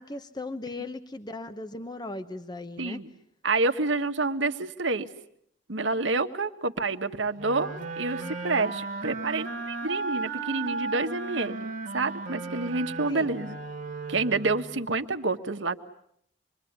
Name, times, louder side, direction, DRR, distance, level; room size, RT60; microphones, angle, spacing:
voice 1, 0.0-3.0 13.1-13.3, left 2 dB, 20° left, 9 dB, 1.0 m, -37 dB
voice 2, 2.8-3.1 3.4-5.1 5.7-13.6 14.1-15.8, right 3 dB, 80° right, 8 dB, 1.6 m, -28 dB
sound 1, 7.4-14.8, right 3 dB, 45° right, 2.0 m, -35 dB
26.5 x 23.0 x 9.6 m, 0.71 s
head